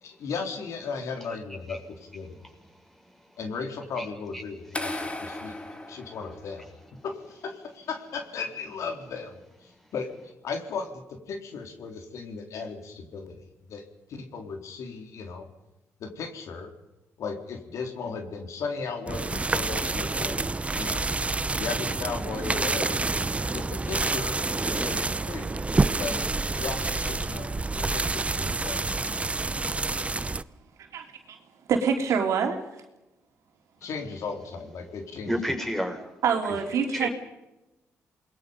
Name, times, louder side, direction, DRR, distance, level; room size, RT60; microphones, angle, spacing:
voice 1, 0.0-2.4 3.4-5.5 5.9-6.7 7.0-11.0 11.3-13.8 14.1-15.4 16.0-16.7 17.2-21.1 21.6-23.0 23.5-25.6 26.0-26.2 26.5-29.3 33.8-35.4 36.5-36.6, left 5 dB, 75° left, 4 dB, 4.0 m, -36 dB
voice 2, 2.4-3.2 4.0-4.1 4.3-4.4 5.8-5.9 35.2-36.0 36.3-36.4 36.9-37.1, equal, 5° left, 3 dB, 6.3 m, -32 dB
sound 1, 4.7-6.8, left 1 dB, 25° left, 3.2 m, -36 dB
sound 2, 19.1-30.4, right 3 dB, 25° right, 0.8 m, -28 dB
voice 3, 30.9-31.4 31.7-32.6 36.2-37.1, right 6 dB, 80° right, 4 dB, 3.3 m, -25 dB
28.0 x 21.5 x 5.4 m, 0.96 s
cardioid pair, 65°, 5 cm